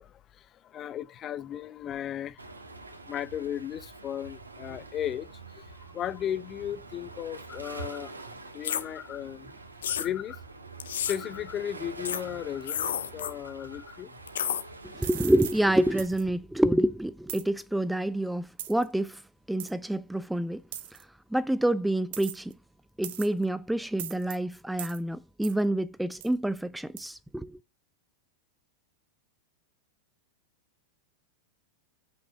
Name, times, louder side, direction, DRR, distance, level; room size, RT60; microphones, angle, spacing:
voice 1, 0.7-2.3 3.1-5.3 5.9-8.1 8.5-9.5 9.9-10.4 11.1-14.1, left 10 dB, 30° left, 0.7 m, -35 dB
Waves surf, 2.4-16.0, right 3 dB, 90° right, 2.0 m, -45 dB
sound 1, 8.6-8.8 9.8-10.1 10.8-11.2 12.0-12.2 12.6-13.3 14.3-14.6, left 9 dB, 70° left, 1.1 m, -30 dB
voice 2, 15.0-19.2 19.5-20.6 21.3-22.5 23.0-27.5, right 1 dB, 5° right, 0.4 m, -27 dB
sound 2, 15.0-15.6 16.0-16.2 17.3-17.5 18.6-18.8 19.6-19.7 20.7-21.0 22.1-22.5 23.0-23.4 24.0-24.4 24.8-25.0 25.4-25.6 26.2-26.3 27.0-27.1, right 12 dB, 55° right, 1.4 m, -39 dB
8.5 x 6.0 x 5.9 m
figure-of-eight pair, 95°, 0 cm